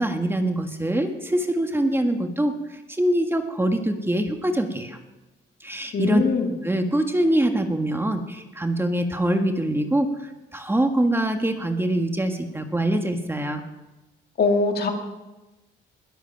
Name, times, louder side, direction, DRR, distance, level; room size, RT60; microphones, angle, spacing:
voice 1, 0.0-5.0 5.6-6.2 6.6-13.6, right 1 dB, 10° right, 5 dB, 1.6 m, -24 dB
voice 2, 5.9-6.5 14.4-14.9, left 4 dB, 55° left, 4 dB, 2.2 m, -21 dB
21.0 x 8.2 x 5.8 m, 1.1 s
cardioid pair, 90°, 20 cm